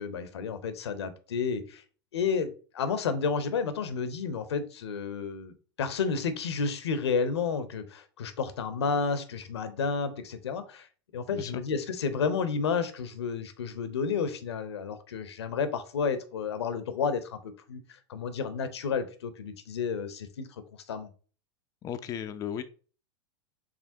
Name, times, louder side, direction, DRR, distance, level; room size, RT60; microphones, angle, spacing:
voice 1, 0.0-1.8 2.1-10.9 11.1-20.6 20.9-21.1, left 5 dB, 75° left, 11 dB, 0.7 m, -31 dB
voice 2, 21.8-22.6, left 9 dB, 25° left, 9 dB, 0.4 m, -35 dB
5.0 x 3.4 x 2.7 m, 0.38 s
hypercardioid pair, 95°, 14 cm